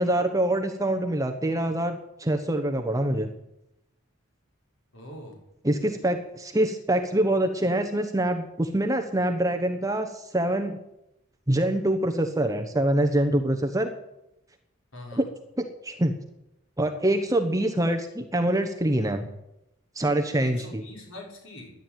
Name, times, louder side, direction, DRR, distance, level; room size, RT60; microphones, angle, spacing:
voice 1, 0.0-3.3 5.6-10.8 11.5-13.9 15.1-15.3 15.6-16.1 16.8-19.3 19.9-20.8, right 1 dB, 15° right, 5 dB, 1.1 m, -25 dB
voice 2, 4.9-5.4 14.9-15.3 20.4-21.7, left 1 dB, 75° left, -1 dB, 5.8 m, -43 dB
13.5 x 11.0 x 9.1 m, 0.86 s
head